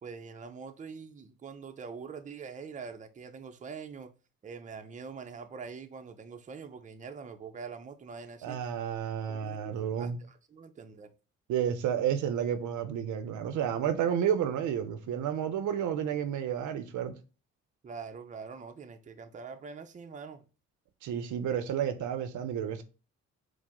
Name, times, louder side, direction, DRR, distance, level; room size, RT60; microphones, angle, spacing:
voice 1, 0.0-4.1 4.4-8.6 9.3-11.1 17.8-20.4, right 5 dB, 25° right, 0.5 m, -44 dB
voice 2, 8.4-10.2 11.5-17.2 21.0-22.8, right 9 dB, 80° right, 0.6 m, -31 dB
4.9 x 2.0 x 3.5 m
cardioid pair, 75°, 30 cm